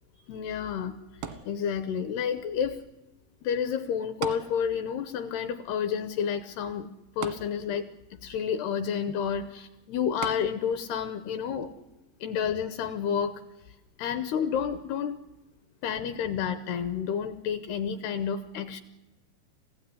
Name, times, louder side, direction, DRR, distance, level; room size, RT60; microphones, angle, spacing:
voice 1, 0.3-1.0 1.3-2.8 3.4-6.9 7.2-7.8 8.1-11.7 12.2-13.4 14.0-15.2 15.8-18.8, left 7 dB, 75° left, 10 dB, 2.6 m, -30 dB
sound 1, 1.2-2.1 4.2-5.1 5.4-5.5 7.2-8.1 10.2-10.9 11.6-11.7, right 8 dB, 85° right, 4.1 m, -39 dB
25.5 x 16.0 x 9.6 m, 1.0 s
omnidirectional pair, 5.5 m